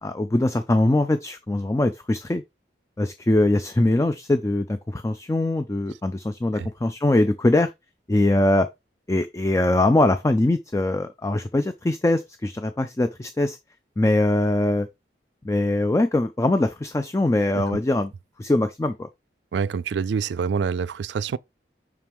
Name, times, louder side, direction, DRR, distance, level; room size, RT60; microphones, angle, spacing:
voice 1, 0.0-2.4 3.0-7.7 8.1-8.7 9.1-13.6 14.0-14.9 15.4-18.1 18.4-19.1, left 2 dB, 15° left, 0.3 m, -22 dB
voice 2, 19.5-21.4, right 6 dB, 80° right, 0.3 m, -26 dB
6.0 x 4.5 x 3.5 m
head